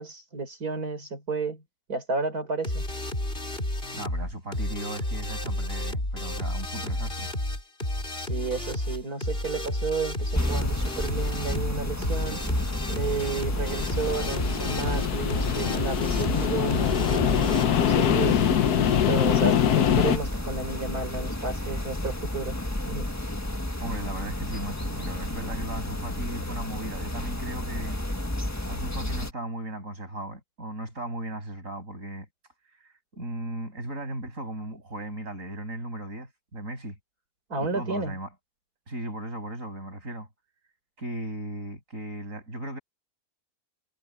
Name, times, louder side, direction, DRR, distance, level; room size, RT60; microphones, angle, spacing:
voice 1, 0.0-1.6 1.9-2.8 8.2-12.5 12.9-18.4 19.1-22.6 22.9-23.1 37.5-38.2, right 4 dB, 75° right, 5.0 m, -32 dB
sound 1, 2.6-17.7, left 1 dB, 35° left, 5.8 m, -31 dB
voice 2, 3.9-7.3 23.8-28.0 28.7-32.3 33.1-37.0 37.6-38.3 38.9-40.3 41.0-42.8, right 1 dB, 60° right, 8.2 m, -36 dB
sound 2, 10.3-29.3, left 1 dB, 10° left, 1.5 m, -32 dB
sound 3, 13.2-20.2, left 9 dB, 80° left, 1.5 m, -24 dB
omnidirectional pair, 1.6 m